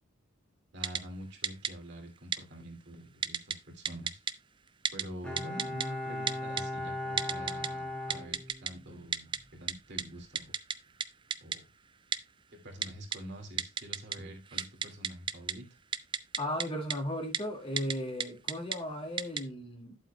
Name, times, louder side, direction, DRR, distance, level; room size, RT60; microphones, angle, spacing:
voice 1, 0.7-4.2 4.9-10.5 11.4-11.6 12.5-15.7, equal, 55° right, 2.5 m, -46 dB
Typing, 0.8-1.0 1.4-1.7 2.3-2.4 3.2-3.6 3.9-4.3 4.9-5.0 5.4-5.9 6.3-6.6 7.2-7.7 8.1-8.7 9.1-9.4 9.7-9.8 10.0-10.1 10.4-10.8 11.0-11.1 11.3-11.6 12.1-12.2 12.8-13.2 13.6-14.2 14.5-15.5 15.9-16.7 16.9-17.0 17.3-17.4 17.8-17.9 18.2-18.8 19.2-19.4, right 7 dB, 25° right, 0.4 m, -31 dB
Bowed string instrument, 5.2-9.0 9.3-9.4, left 1 dB, 5° left, 1.7 m, -38 dB
voice 2, 16.4-20.0, left 1 dB, 25° left, 2.1 m, -36 dB
11.5 x 7.8 x 2.3 m
head